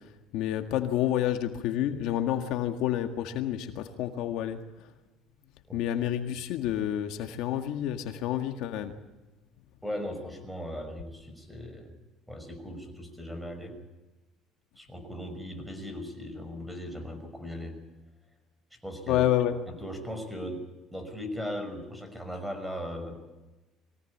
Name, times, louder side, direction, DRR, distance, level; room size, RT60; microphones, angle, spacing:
voice 1, 0.3-4.6 5.7-8.9 19.1-19.5, left 11 dB, 75° left, 6 dB, 1.8 m, -29 dB
voice 2, 9.8-11.9 12.3-13.8 14.8-17.8 18.7-19.2 19.7-20.6 20.9-23.2, equal, ahead, 7 dB, 5.9 m, -38 dB
23.0 x 17.5 x 8.4 m, 1.1 s
cardioid pair, 110°, 0 cm